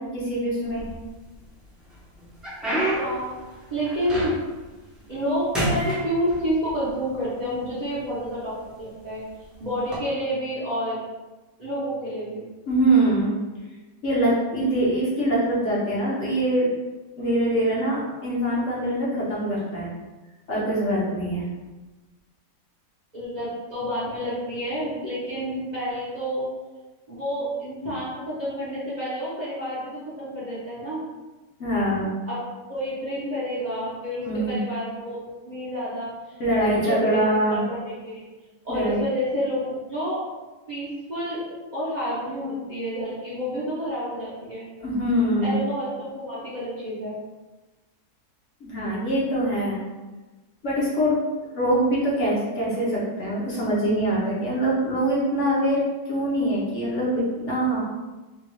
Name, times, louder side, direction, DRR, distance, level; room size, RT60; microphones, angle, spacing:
voice 1, 0.1-0.9 12.7-13.4 14.0-16.7 17.2-19.9 20.5-21.5 31.6-32.1 34.3-34.6 36.4-37.6 38.7-39.0 44.8-45.6 48.6-49.8 50.6-51.2 51.5-57.8, right 1 dB, 55° left, -6 dB, 1.1 m, -23 dB
sound 1, 0.7-1.4 1.9-4.6 5.0-5.3 5.5-6.8 7.6-7.7 8.4-8.6 9.8-10.0, right 1 dB, ahead, 0.5 m, -29 dB
voice 2, 3.0-3.3 3.7-4.3 5.1-9.2 9.6-11.0 11.6-12.4 23.1-26.5 27.1-31.0 32.2-32.4 32.7-35.2 35.5-36.1 36.6-37.8 38.0-38.2 38.6-40.2 40.7-41.5 41.7-44.6 45.4-47.2, equal, 40° right, -9 dB, 0.7 m, -29 dB
3.6 x 2.3 x 3.0 m, 1.2 s
omnidirectional pair, 1.6 m